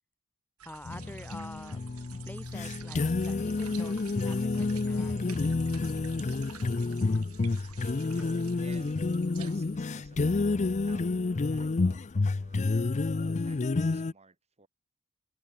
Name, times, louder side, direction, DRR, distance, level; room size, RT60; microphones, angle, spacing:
voice 1, 0.6-1.8 2.2-5.4, left 1 dB, 10° left, 1.7 m, -46 dB
sound 1, 0.6-9.8, right 9 dB, 75° right, 1.5 m, -51 dB
sound 2, 0.9-14.1, left 3 dB, 30° left, 0.5 m, -29 dB
voice 2, 8.1-9.0 9.3-14.7, right 3 dB, 30° right, 4.3 m, -56 dB
head